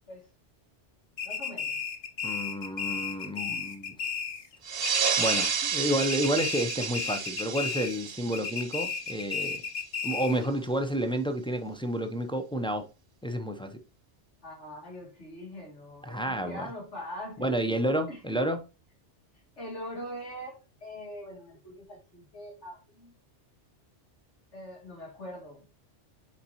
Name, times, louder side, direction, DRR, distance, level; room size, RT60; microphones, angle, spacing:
voice 1, 1.2-1.8 14.4-17.6 18.1-18.2 19.6-23.1 24.5-25.6, equal, 75° left, 2.9 m, -42 dB
sound 1, 1.2-4.6 4.8-5.7 6.0-8.0 8.3-10.5, left 5 dB, 60° left, 1.1 m, -34 dB
voice 2, 2.2-3.9 5.2-9.6 10.0-12.9 13.2-13.8 16.0-16.7 17.4-18.6, right 1 dB, 5° left, 0.5 m, -30 dB
sound 2, 4.6-9.7, right 7 dB, 60° right, 1.1 m, -31 dB
8.5 x 4.1 x 2.9 m
omnidirectional pair, 1.2 m